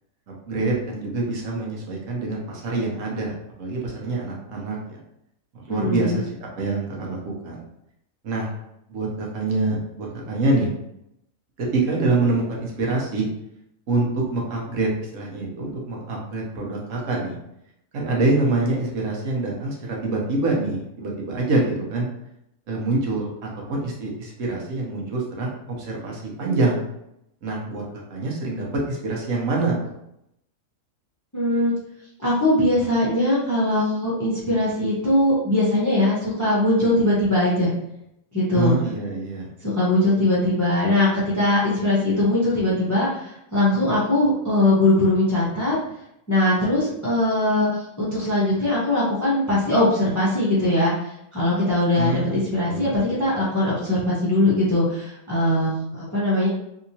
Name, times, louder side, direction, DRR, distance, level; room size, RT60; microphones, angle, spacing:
voice 1, 0.3-3.3 3.6-4.8 5.6-7.6 8.2-8.5 8.9-10.7 11.6-13.3 13.9-17.4 17.9-22.1 22.7-23.3 23.7-26.8 27.4-27.8 28.1-29.9 38.5-39.5 52.0-52.9, right 2 dB, 70° right, -2 dB, 1.2 m, -25 dB
voice 2, 5.7-6.2 31.3-31.7 32.2-37.7 38.3-38.8 39.6-41.1 41.3-45.7 46.3-50.9 51.3-56.5, left 1 dB, 15° left, -8 dB, 0.7 m, -21 dB
3.4 x 2.9 x 2.8 m, 0.81 s
omnidirectional pair, 1.4 m